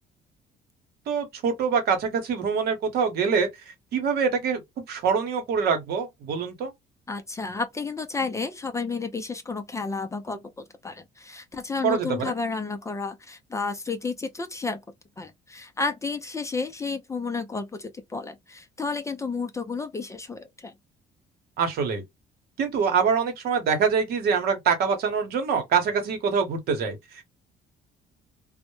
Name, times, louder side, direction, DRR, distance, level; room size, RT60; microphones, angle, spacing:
voice 1, 1.1-3.5 3.9-4.6 4.9-6.7 11.8-12.2 21.6-22.0 22.6-27.2, right 6 dB, 70° right, 0.9 m, -24 dB
voice 2, 7.1-14.8 15.2-20.7, left 4 dB, 15° left, 0.4 m, -32 dB
2.1 x 2.0 x 2.9 m
cardioid pair, 110°, 17 cm